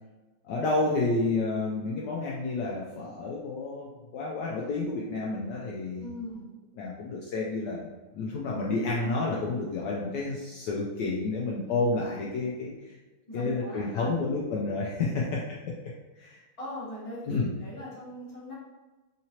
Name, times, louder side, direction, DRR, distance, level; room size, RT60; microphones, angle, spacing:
voice 1, 0.5-6.1 6.8-7.8 8.1-13.0 13.3-15.6 16.2-16.4 17.3-17.5, left 3 dB, 85° left, -4 dB, 0.9 m, -30 dB
voice 2, 6.0-6.5 13.3-14.1 14.9-15.3 16.6-18.5, left 1 dB, 20° left, -9 dB, 0.9 m, -40 dB
3.7 x 2.9 x 2.8 m, 1.2 s
omnidirectional pair, 2.4 m